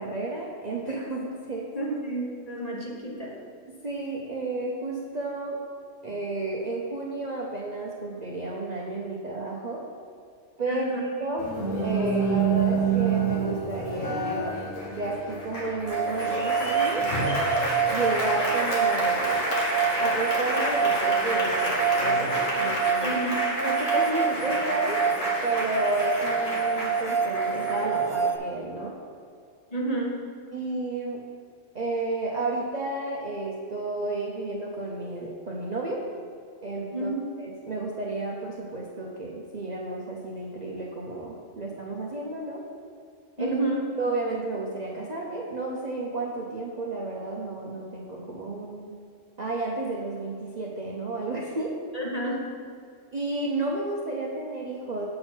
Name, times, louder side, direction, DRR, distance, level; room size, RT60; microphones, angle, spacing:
voice 1, 0.0-1.7 3.8-5.6 6.0-9.8 10.6-11.4 11.8-14.6 14.9-17.1 17.9-19.5 20.0-23.2 23.6-25.0 25.4-29.0 30.5-31.2 31.7-36.0 36.6-37.1 37.4-42.6 43.4-43.6 44.0-48.9 49.4-51.7 53.1-55.1, right 2 dB, 40° right, -3 dB, 0.7 m, -32 dB
voice 2, 1.7-3.4 10.7-11.0 23.0-23.5 29.7-30.2 36.9-37.2 43.4-43.9 51.9-52.5, right 2 dB, 30° left, -3 dB, 1.2 m, -30 dB
Applause, 11.4-28.4, right 2 dB, 80° left, 1.6 m, -29 dB
sound 1, 15.9-28.4, right 6 dB, 75° right, 1.0 m, -27 dB
7.5 x 6.1 x 4.4 m, 2.3 s
omnidirectional pair, 1.3 m